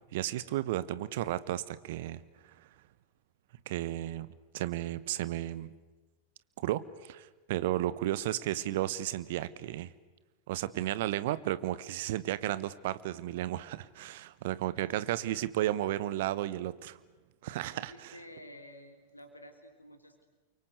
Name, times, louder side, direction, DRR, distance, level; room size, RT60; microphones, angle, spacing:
voice 1, 0.1-2.2 2.6-2.7 3.7-4.3 4.5-5.7 6.6-9.9 10.5-17.0 17.4-18.2, right 14 dB, 55° right, 16 dB, 1.2 m, -33 dB
voice 2, 14.7-15.1 17.7-20.3, left 1 dB, 80° left, 8 dB, 3.6 m, -52 dB
29.5 x 24.0 x 8.2 m, 1.2 s
figure-of-eight pair, 90°, 0 cm